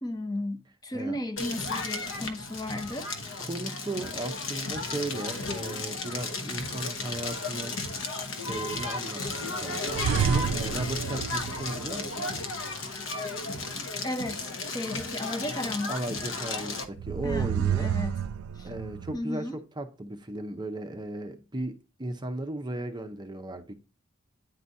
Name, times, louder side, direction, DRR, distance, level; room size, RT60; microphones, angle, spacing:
voice 1, 0.0-3.1 9.2-9.3 14.0-15.9 17.2-18.2 18.6-18.7 19.1-19.6, left 1 dB, 20° left, 0.6 m, -34 dB
Crackle, 1.4-16.8, left 3 dB, 65° left, 0.9 m, -34 dB
voice 2, 3.4-7.8 8.4-12.3 15.9-17.9 18.6-23.7, right 1 dB, 20° right, 0.6 m, -36 dB
sound 1, 9.9-12.3 16.8-19.2, right 8 dB, 75° right, 0.3 m, -29 dB
9.4 x 3.9 x 2.6 m
head